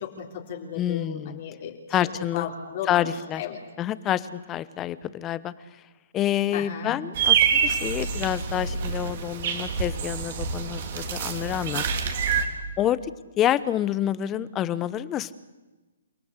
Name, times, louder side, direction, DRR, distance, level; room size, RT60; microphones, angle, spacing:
voice 1, 0.0-1.8 2.3-3.1 3.4-3.6 6.5-7.0, left 8 dB, 45° left, 1 dB, 3.4 m, -35 dB
voice 2, 0.8-1.4 1.9-2.5 2.9-3.4 3.8-5.5 6.1-11.8 12.8-13.0 13.4-15.3, left 11 dB, 20° left, 17 dB, 1.0 m, -27 dB
sound 1, 7.1-12.4, right 7 dB, 50° right, 3.7 m, -26 dB
29.5 x 17.5 x 8.2 m, 1.2 s
hypercardioid pair, 145°, 0 cm